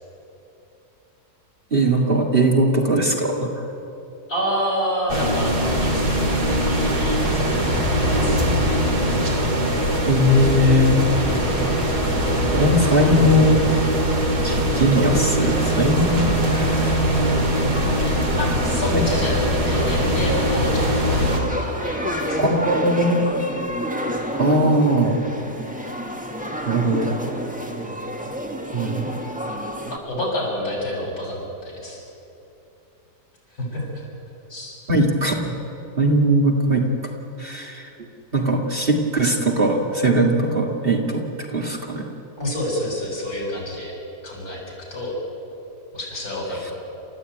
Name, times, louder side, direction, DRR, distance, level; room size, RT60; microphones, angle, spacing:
voice 1, 1.7-3.6 10.1-11.0 12.5-13.6 14.4-16.9 18.9-19.0 22.4-23.3 24.4-25.2 26.7-27.1 28.7-29.1 34.9-35.5 36.0-36.9 37.4-37.9 38.3-41.2 41.5-42.1, right 1 dB, 35° right, 0 dB, 2.2 m, -19 dB
voice 2, 4.3-5.5 5.8-6.2 6.7-8.5 18.4-21.2 21.6-22.4 29.8-32.0 33.6-34.0 34.5-34.7 42.4-43.9 44.2-44.6 44.9-45.1 45.9-46.7, left 1 dB, 65° left, -2 dB, 7.5 m, -28 dB
sound 1, 5.1-21.4, equal, 70° right, 3.8 m, -21 dB
sound 2, 14.5-30.0, equal, 5° right, 1.6 m, -31 dB
29.5 x 14.5 x 9.2 m, 2.9 s
omnidirectional pair, 1.7 m